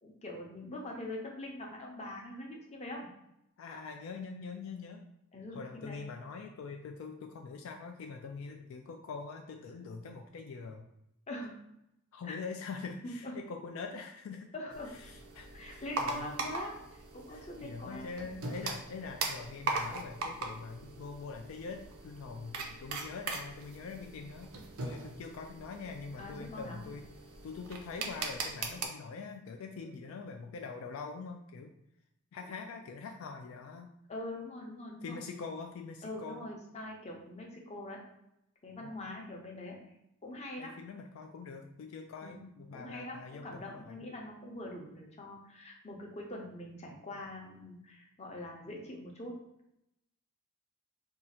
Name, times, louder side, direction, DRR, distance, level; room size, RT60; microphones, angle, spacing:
voice 1, 0.0-3.1 5.3-6.0 11.3-11.6 12.2-12.4 13.0-13.3 14.5-14.9 15.5-18.1 26.2-26.8 29.8-30.0 34.1-35.2 36.0-38.0 38.6-39.8 40.2-40.7 42.2-42.5 42.7-49.3, left 1 dB, 30° left, 0 dB, 0.6 m, -43 dB
voice 2, 3.6-5.1 5.5-10.8 12.1-14.5 14.9-16.3 17.3-24.5 24.8-27.0 27.4-31.7 32.3-33.9 35.0-36.5 38.8-38.9 40.6-44.1, left 4 dB, 70° left, 4 dB, 0.3 m, -44 dB
sound 1, 14.7-28.9, right 3 dB, 80° right, 0.5 m, -40 dB
2.7 x 2.4 x 4.2 m, 0.81 s
head